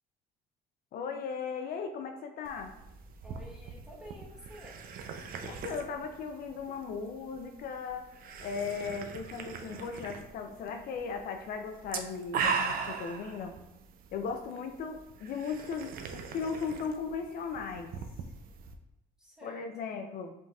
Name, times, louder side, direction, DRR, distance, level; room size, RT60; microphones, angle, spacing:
voice 1, 0.9-2.7 5.4-8.1 8.4-13.5 14.1-17.9 19.4-20.3, left 5 dB, 60° left, 5 dB, 0.4 m, -37 dB
sound 1, 2.4-18.7, right 5 dB, 60° right, 0.5 m, -40 dB
voice 2, 3.2-4.9 14.5-14.7 19.2-20.0, equal, 5° right, -4 dB, 1.1 m, -51 dB
5.2 x 3.8 x 2.3 m, 0.91 s
cardioid pair, 110°, 17 cm